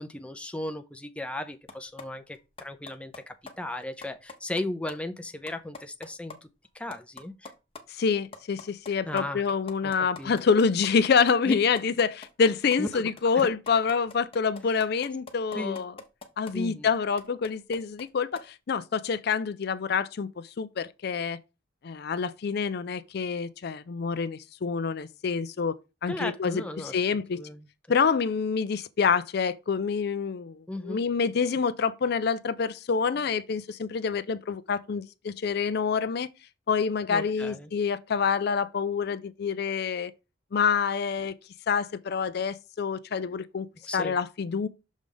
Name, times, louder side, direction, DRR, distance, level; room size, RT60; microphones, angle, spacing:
voice 1, 0.0-6.4 6.7-7.5 9.0-9.4 9.8-10.4 11.4-11.6 12.8-13.0 13.3-13.5 15.5-15.8 16.5-16.9 26.1-27.0 27.3-27.7 30.7-31.0 37.1-37.7 43.8-44.2, left 1 dB, 5° left, 0.5 m, -36 dB
sound 1, 1.7-2.0 2.3-3.2 3.5-3.6 3.8-4.6 4.9-5.0 5.3-6.3 6.6-6.7 6.9-7.8 8.1-16.5 16.9-18.1 18.3-18.4, left 4 dB, 30° left, 0.9 m, -43 dB
voice 2, 7.9-15.9 16.4-21.4 21.8-25.8 26.0-27.4 27.9-36.3 36.7-40.1 40.5-41.3 41.7-43.7 43.9-44.7, left 5 dB, 55° left, 0.4 m, -27 dB
6.3 x 3.4 x 5.3 m
head